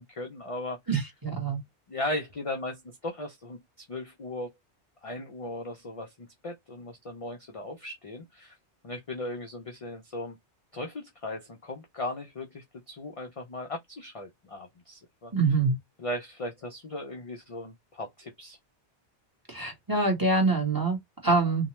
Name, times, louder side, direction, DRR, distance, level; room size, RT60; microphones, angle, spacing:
voice 1, 0.0-0.8 1.9-4.5 5.0-8.6 8.8-10.4 10.7-15.3 16.0-18.6, left 1 dB, 45° left, 0.5 m, -37 dB
voice 2, 0.9-1.6 15.3-15.8 19.5-21.7, right 3 dB, 20° right, 1.1 m, -25 dB
2.8 x 2.2 x 3.0 m
omnidirectional pair, 1.1 m